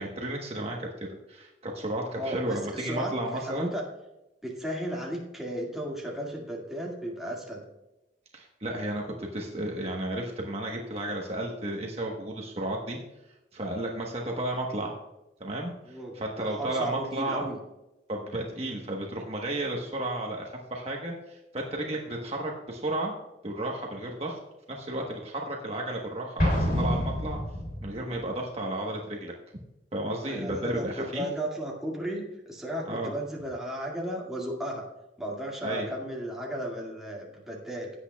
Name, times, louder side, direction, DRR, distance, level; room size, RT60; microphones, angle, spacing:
voice 1, 0.0-3.7 8.3-13.0 13.5-14.9 15.4-17.5 18.1-23.1 23.4-24.4 24.7-27.4 27.8-29.3 29.9-31.3 32.9-33.1 35.6-35.9, right 1 dB, 35° right, 0 dB, 1.2 m, -33 dB
voice 2, 2.1-3.8 4.4-7.6 15.8-17.6 30.2-34.9 35.2-37.9, right 1 dB, 5° right, -3 dB, 2.0 m, -35 dB
Explosion, 26.4-28.0, equal, 50° left, 3.2 m, -27 dB
16.5 x 8.4 x 2.3 m, 0.95 s
head